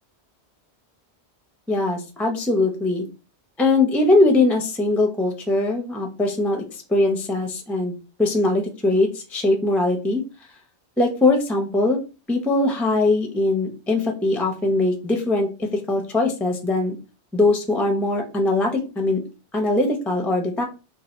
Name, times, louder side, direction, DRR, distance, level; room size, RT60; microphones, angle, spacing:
voice 1, 1.7-3.0 3.6-10.2 11.0-12.0 12.3-17.0 17.3-19.2 19.5-20.6, left 2 dB, ahead, 3 dB, 0.4 m, -21 dB
2.7 x 2.5 x 4.1 m, 0.32 s
omnidirectional pair, 1.2 m